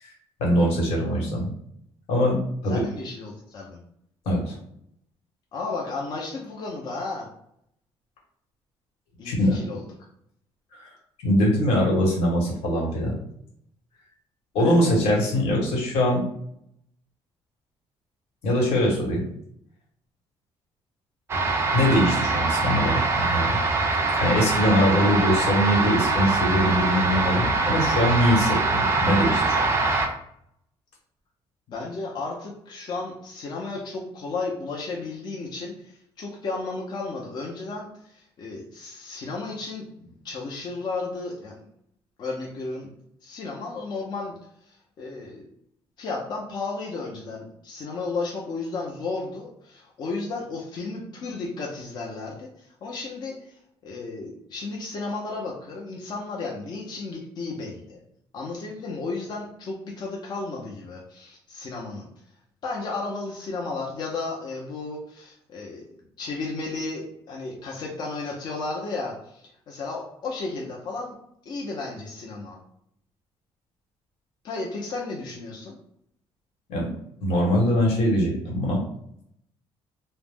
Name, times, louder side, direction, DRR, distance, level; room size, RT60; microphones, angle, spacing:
voice 1, 0.4-1.5 2.1-2.8 4.2-4.5 9.2-9.6 10.8-10.9 11.2-13.2 14.5-16.3 18.4-19.3 21.7-23.6 24.2-29.6 76.7-76.9 77.2-78.8, equal, 90° left, -2 dB, 1.1 m, -22 dB
voice 2, 2.7-3.8 5.5-7.3 9.2-9.8 14.6-14.8 31.7-35.9 36.2-41.6 42.2-42.9 43.2-44.4 44.7-45.4 46.0-53.4 53.8-58.0 58.3-62.1 62.6-65.9 66.2-71.2 71.5-72.6 74.4-75.7, left 3 dB, 45° left, -2 dB, 0.5 m, -33 dB
sound 1, 21.3-30.1, right 3 dB, 25° right, 0.4 m, -23 dB
2.4 x 2.0 x 3.4 m, 0.72 s
cardioid pair, 160°, 10 cm